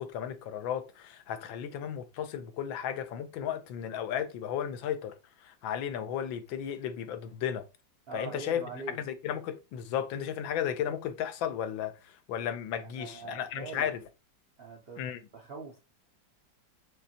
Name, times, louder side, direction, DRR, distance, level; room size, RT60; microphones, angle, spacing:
voice 1, 0.0-5.1 5.4-7.6 8.1-8.6 9.0-14.0 15.0-15.2, left 9 dB, 90° left, 1.4 m, -34 dB
voice 2, 8.1-9.0 12.9-13.9 14.6-15.1 15.3-15.8, right 4 dB, 85° right, 0.5 m, -42 dB
5.4 x 3.2 x 2.8 m
omnidirectional pair, 2.1 m